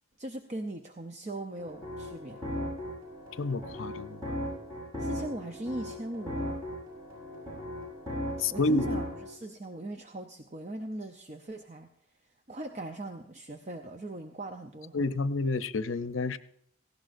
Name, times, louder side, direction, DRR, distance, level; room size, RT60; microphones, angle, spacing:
voice 1, 0.2-2.4 5.0-6.6 8.5-11.9 12.2-15.0, right 1 dB, 35° right, 5 dB, 0.6 m, -40 dB
sound 1, 1.6-9.3, equal, 15° right, 6.6 m, -37 dB
voice 2, 3.4-4.4 8.4-9.0 14.9-16.4, left 3 dB, 80° left, 12 dB, 0.7 m, -29 dB
18.0 x 16.0 x 2.6 m, 0.68 s
head